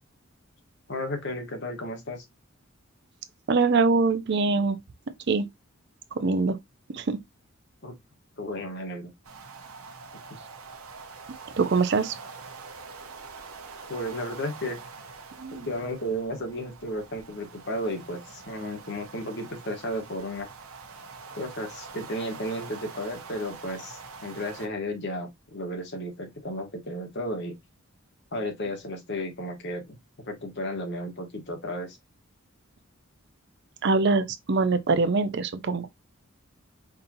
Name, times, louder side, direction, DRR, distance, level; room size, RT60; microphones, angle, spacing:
voice 1, 0.9-2.2 7.8-7.9 8.4-9.1 13.9-14.8 15.5-20.5 21.3-27.5 28.3-30.0 30.2-32.0, equal, 55° left, 1.3 m, -33 dB
voice 2, 3.5-4.8 5.3-5.5 6.2-6.6 6.9-7.2 11.6-12.1 15.4-15.7 33.8-35.9, right 3 dB, 55° right, 0.5 m, -23 dB
sound 1, 9.2-24.7, right 4 dB, 80° right, 0.9 m, -44 dB
5.2 x 2.8 x 2.6 m
head